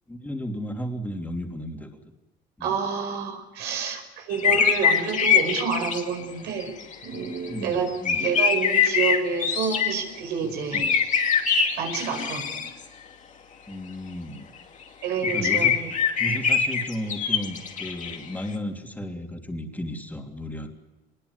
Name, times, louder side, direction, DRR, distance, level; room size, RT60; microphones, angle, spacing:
voice 1, 0.1-2.0 2.6-2.8 4.4-4.6 7.5-8.2 10.4-10.9 11.8-11.9 13.7-14.5 15.3-15.8 16.2-20.7, equal, 10° left, 2 dB, 3.3 m, -34 dB
voice 2, 2.6-6.7 7.0-7.9 8.2-10.9 11.8-12.7 15.0-15.9, right 6 dB, 85° right, 4 dB, 5.5 m, -28 dB
sound 1, 4.3-6.2 6.6-7.5 7.9-9.9 10.7-12.7 15.2-18.2, left 7 dB, 45° left, 2.6 m, -23 dB
24.0 x 20.5 x 9.8 m, 1.2 s
cardioid pair, 110°, 17 cm